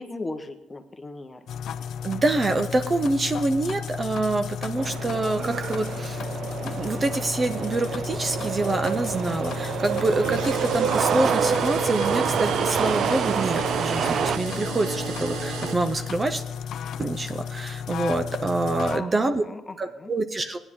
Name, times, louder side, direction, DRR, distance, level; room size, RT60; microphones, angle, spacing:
voice 1, 0.0-1.4 18.9-20.1, left 2 dB, 20° left, 8 dB, 1.0 m, -37 dB
sound 1, 1.5-19.0, left 7 dB, 65° left, 0.5 m, -34 dB
voice 2, 2.0-6.3 6.6-16.4 17.0-19.4 19.8-20.6, right 2 dB, 25° right, 8 dB, 0.7 m, -26 dB
sound 2, 4.8-14.4, right 7 dB, 55° right, 0.4 m, -27 dB
sound 3, 10.2-16.4, right 5 dB, 90° right, 1.2 m, -33 dB
18.0 x 9.8 x 3.6 m, 1.0 s
cardioid pair, 120°, 0 cm